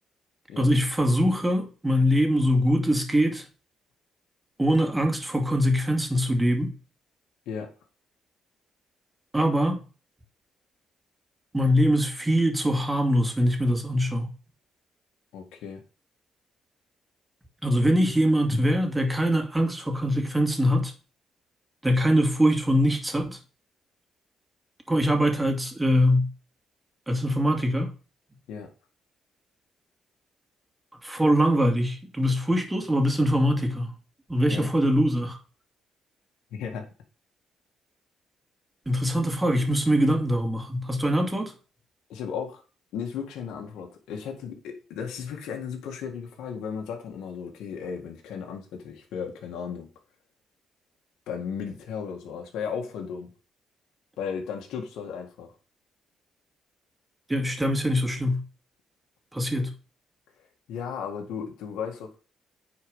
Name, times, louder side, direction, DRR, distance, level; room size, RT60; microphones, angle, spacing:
voice 1, 0.6-3.5 4.6-6.7 9.3-9.8 11.5-14.3 17.6-20.9 21.8-23.4 24.9-26.3 27.1-27.9 31.0-33.9 34.3-35.4 38.9-41.5 57.3-58.4 59.3-59.7, equal, 15° right, 2.4 m, -23 dB
voice 2, 15.3-15.8 28.5-28.7 34.5-34.7 36.5-36.9 42.1-42.6 42.9-49.9 51.3-53.3 54.2-55.5 60.7-62.2, left 6 dB, 85° left, 1.9 m, -35 dB
9.7 x 4.7 x 5.5 m
cardioid pair, 90°, 0 cm